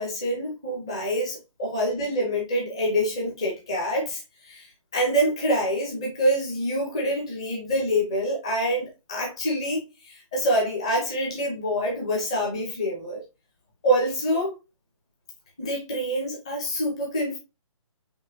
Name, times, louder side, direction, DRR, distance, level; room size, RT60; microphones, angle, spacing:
voice 1, 0.0-4.7 4.9-13.2 13.8-14.6 15.6-17.4, equal, 10° left, 0.6 m, -26 dB
5.3 x 3.1 x 2.7 m
hypercardioid pair, 180°, 17 cm